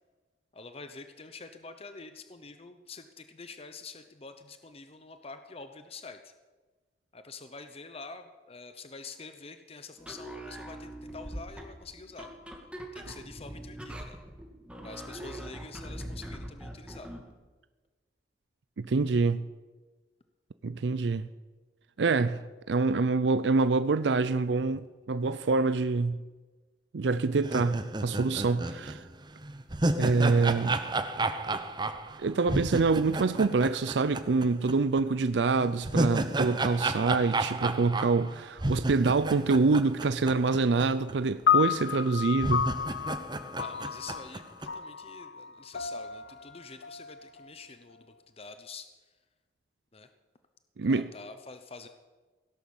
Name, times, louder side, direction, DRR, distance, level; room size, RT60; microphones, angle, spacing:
voice 1, 0.5-6.3 7.1-12.3 12.9-14.2 14.8-17.1 43.6-48.9 49.9-50.1 50.9-51.9, left 4 dB, 35° left, 0.9 m, -46 dB
sound 1, 10.0-17.3, right 1 dB, 5° right, 2.1 m, -42 dB
voice 2, 18.8-19.4 20.6-21.3 22.0-22.4 22.7-26.2 26.9-29.0 30.0-30.8 32.2-42.7 50.8-51.0, right 4 dB, 80° right, 0.5 m, -26 dB
sound 2, 27.4-34.7 35.0-35.1 35.6-40.8 41.1-41.2 41.9-42.0 42.4-44.7, right 2 dB, 25° right, 0.8 m, -32 dB
sound 3, 41.5-47.9, left 8 dB, 75° left, 0.7 m, -31 dB
17.0 x 11.5 x 7.2 m
head